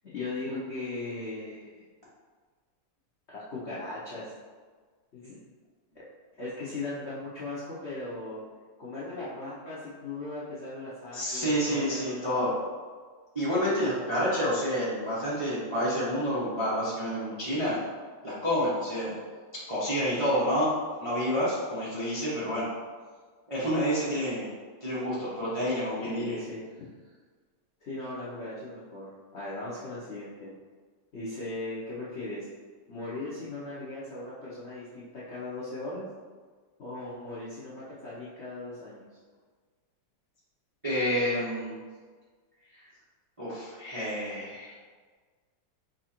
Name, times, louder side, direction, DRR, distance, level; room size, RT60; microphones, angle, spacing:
voice 1, 0.0-1.8 3.3-4.3 5.1-5.3 5.9-6.0 6.4-8.4 8.8-12.2 26.0-26.6 27.8-30.5 31.1-32.5 32.9-36.1 36.8-39.1, left 2 dB, 70° left, -8 dB, 0.6 m, -38 dB
voice 2, 11.1-12.5 13.3-17.8 18.2-19.1 19.5-22.7 23.5-24.5 24.8-26.4 40.8-41.8 43.4-44.8, equal, 35° right, -9 dB, 0.5 m, -29 dB
4.6 x 2.5 x 4.3 m, 1.5 s
omnidirectional pair, 2.4 m